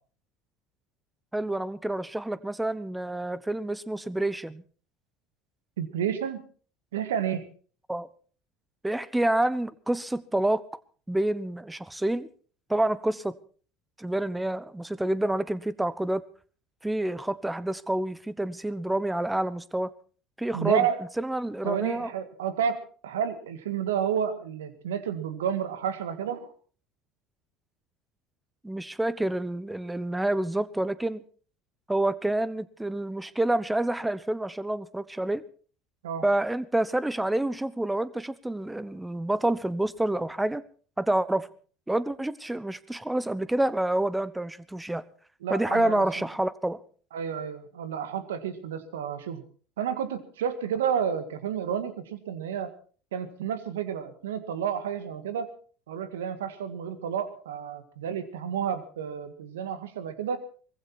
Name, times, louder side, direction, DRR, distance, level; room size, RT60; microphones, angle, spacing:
voice 1, 1.3-4.6 7.9-8.1 8.8-10.6 11.1-12.3 12.7-13.3 14.0-16.2 16.8-19.9 20.4-20.9 21.2-22.1 28.6-31.2 31.9-35.4 36.2-40.6 41.0-41.5 41.9-45.0 45.5-46.8, right 1 dB, 10° right, 1.1 m, -28 dB
voice 2, 5.8-6.4 6.9-7.5 20.5-21.0 21.6-26.5 36.0-36.2 45.4-46.1 47.1-49.4 49.8-52.7 53.1-55.5 55.9-60.4, right 8 dB, 85° right, 1.8 m, -30 dB
20.0 x 15.5 x 4.4 m
hypercardioid pair, 70°, 0 cm